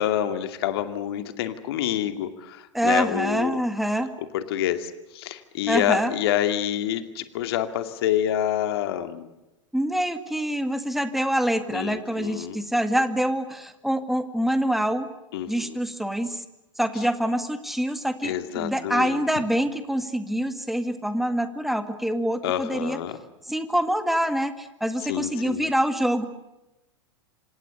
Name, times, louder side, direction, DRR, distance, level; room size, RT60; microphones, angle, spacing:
voice 1, 0.0-3.6 4.3-9.3 11.7-12.6 15.3-15.8 18.2-19.2 22.4-23.2 25.1-25.7, left 11 dB, 55° left, 9 dB, 2.5 m, -27 dB
voice 2, 2.7-4.1 5.7-6.1 9.7-15.1 15.5-16.4 16.8-23.0 23.5-26.3, equal, ahead, 10 dB, 2.1 m, -25 dB
26.5 x 26.5 x 6.8 m, 0.98 s
figure-of-eight pair, 95°, 16 cm